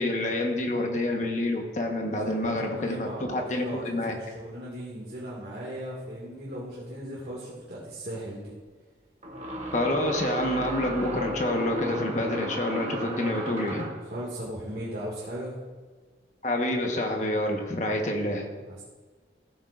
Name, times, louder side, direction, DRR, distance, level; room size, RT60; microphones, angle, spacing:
voice 1, 0.0-4.2 9.7-13.9 16.4-18.5, left 1 dB, 40° left, 2 dB, 1.3 m, -28 dB
voice 2, 2.1-8.5 14.1-15.5 18.6-18.8, equal, 55° right, -6 dB, 2.2 m, -38 dB
sound 1, 7.3-7.4 9.2-14.1, right 1 dB, 35° right, 1.4 m, -35 dB
14.5 x 8.9 x 2.6 m, 1.4 s
head